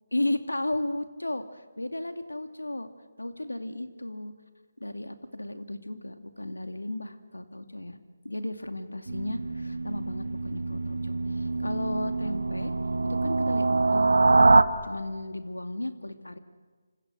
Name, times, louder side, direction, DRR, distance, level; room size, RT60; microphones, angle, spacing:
voice 1, 0.1-2.9 3.2-4.3 4.8-8.0 8.2-12.7 13.1-14.4 14.8-16.4, left 1 dB, 85° left, 8 dB, 2.5 m, -34 dB
sound 1, 9.1-14.6, right 3 dB, 70° right, 1.5 m, -24 dB
28.5 x 26.0 x 6.4 m, 1.4 s
figure-of-eight pair, 150°, 0 cm